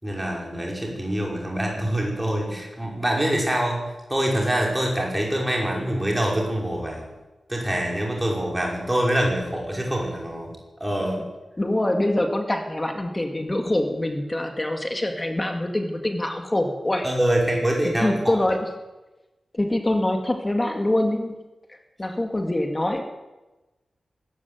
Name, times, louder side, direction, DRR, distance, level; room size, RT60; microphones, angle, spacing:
voice 1, 0.0-7.1 7.5-10.5 10.8-11.2 17.0-18.4, right 1 dB, 10° right, -1 dB, 5.5 m, -25 dB
voice 2, 11.6-17.1 17.8-18.7 19.5-21.4 21.7-23.0, left 1 dB, 15° left, 4 dB, 2.1 m, -24 dB
23.0 x 14.0 x 9.3 m, 1.1 s
wide cardioid pair, 165°, 0 cm